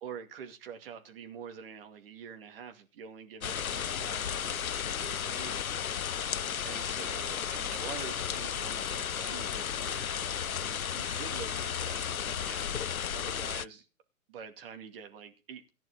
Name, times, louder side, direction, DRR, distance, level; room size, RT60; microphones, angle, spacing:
voice 1, 0.0-5.6 6.6-10.2 10.6-12.7 13.1-13.9 14.3-15.7, right 6 dB, 40° right, 2.4 m, -46 dB
sound 1, 3.4-13.6, left 8 dB, 80° left, 0.6 m, -34 dB
15.0 x 10.5 x 3.9 m
figure-of-eight pair, 120°, 42 cm